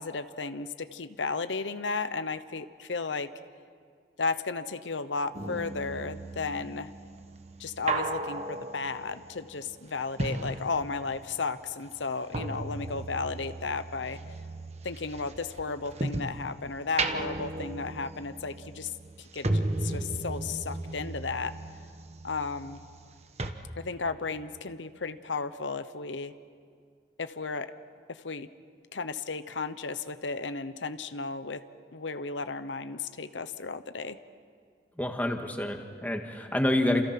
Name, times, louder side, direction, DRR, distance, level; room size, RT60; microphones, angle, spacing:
voice 1, 0.0-3.3 4.2-6.9 7.6-14.2 14.8-18.9 19.2-21.5 22.2-22.8 23.8-26.3 27.2-27.7 28.1-28.5 28.9-31.6 31.9-34.2, left 4 dB, 90° left, 11 dB, 0.9 m, -34 dB
sound 1, 5.3-11.3 11.6-16.4 16.8-23.1 23.4-23.5, right 2 dB, 35° right, 1.3 m, -35 dB
voice 2, 35.0-37.0, left 1 dB, 10° left, 3 dB, 1.8 m, -28 dB
30.0 x 28.0 x 6.0 m, 2.2 s
head